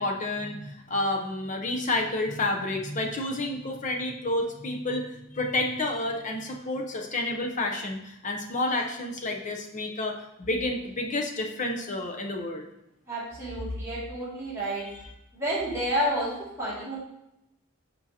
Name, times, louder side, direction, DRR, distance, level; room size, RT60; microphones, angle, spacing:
voice 1, 0.0-12.7, left 2 dB, 35° left, 2 dB, 0.7 m, -30 dB
voice 2, 13.1-14.8 15.3-16.3 16.6-17.0, equal, 15° right, -9 dB, 2.4 m, -29 dB
7.2 x 5.5 x 2.8 m, 0.85 s
head